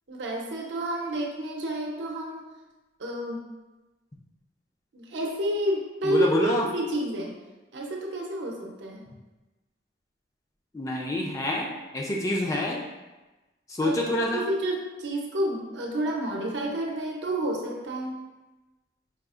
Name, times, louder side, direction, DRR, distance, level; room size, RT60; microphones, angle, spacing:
voice 1, 0.1-2.4 3.0-3.4 4.9-7.3 7.7-9.0 13.8-18.2, right 1 dB, 75° right, -1 dB, 0.6 m, -30 dB
voice 2, 6.0-6.7 10.7-12.8 13.7-14.4, left 1 dB, 15° left, -1 dB, 0.3 m, -27 dB
4.7 x 2.4 x 2.4 m, 1.1 s
head